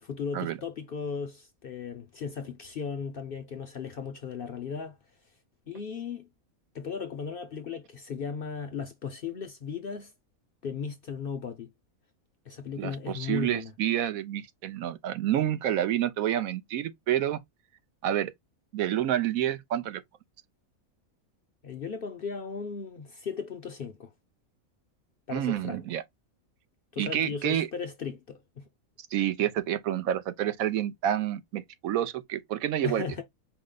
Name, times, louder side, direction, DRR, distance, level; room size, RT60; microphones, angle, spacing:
voice 1, 0.0-5.0 5.7-6.3 6.7-10.1 10.6-11.7 12.5-13.7 21.6-24.1 25.3-25.8 26.9-28.6 32.8-33.2, left 6 dB, 55° left, 0.7 m, -36 dB
voice 2, 12.8-17.4 18.0-18.3 18.7-20.0 25.3-26.0 27.0-27.7 29.1-33.1, right 11 dB, 80° right, 1.1 m, -28 dB
5.0 x 2.1 x 3.7 m
omnidirectional pair, 1.5 m